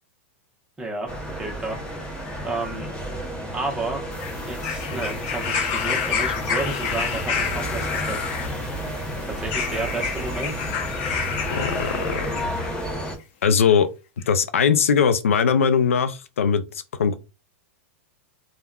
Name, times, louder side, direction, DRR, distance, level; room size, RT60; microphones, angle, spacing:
voice 1, 0.8-2.0 2.4-2.9 3.5-4.0 4.4-8.2 9.2-10.6, right 2 dB, 10° right, 0.9 m, -31 dB
sound 1, 1.1-13.2, equal, 15° left, 0.8 m, -31 dB
sound 2, 4.1-12.8 13.7-13.8, left 6 dB, 50° left, 0.7 m, -29 dB
voice 2, 11.5-12.3 13.4-13.9 14.3-16.6 17.0-17.1, left 6 dB, 90° left, 0.4 m, -20 dB
3.4 x 2.2 x 2.3 m
hypercardioid pair, 120°, 7 cm